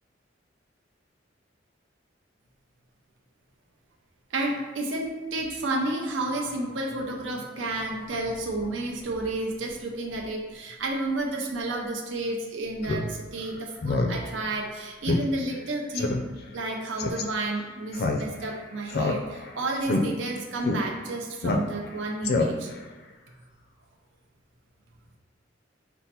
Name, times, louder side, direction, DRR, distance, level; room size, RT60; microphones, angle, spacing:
voice 1, 4.3-16.2 16.5-22.7, right 2 dB, 75° right, 0 dB, 0.6 m, -31 dB
Speech synthesizer, 12.8-13.1 13.4-13.5 13.8-14.1 14.5-14.6 15.1-15.2 15.5-15.6 16.0-16.2 17.0-17.2 17.9-18.5 18.9-19.5 19.8-20.0 20.6-20.8 21.4-21.9 22.2-22.8, left 2 dB, 55° left, 0.4 m, -26 dB
5.3 x 2.1 x 4.3 m, 1.4 s
head